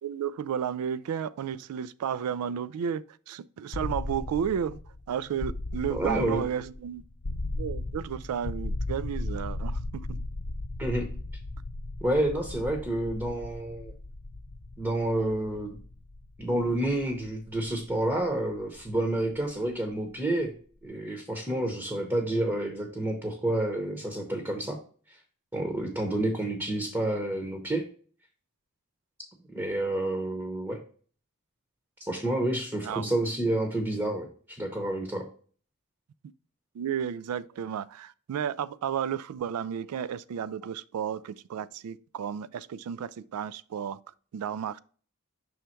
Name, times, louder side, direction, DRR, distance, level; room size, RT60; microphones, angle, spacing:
voice 1, 0.0-4.8 5.1-7.0 7.6-10.2 32.8-33.2 36.7-44.0 44.3-44.8, right 8 dB, 80° right, 0.3 m, -33 dB
sound 1, 3.7-19.6, left 2 dB, 45° left, 0.5 m, -37 dB
voice 2, 5.9-6.4 10.8-11.1 12.0-13.9 14.8-15.8 16.4-20.5 20.8-24.8 25.1-25.2 25.5-27.8 29.5-30.8 32.0-35.3, right 1 dB, 10° right, 0.8 m, -29 dB
6.3 x 3.4 x 4.4 m
head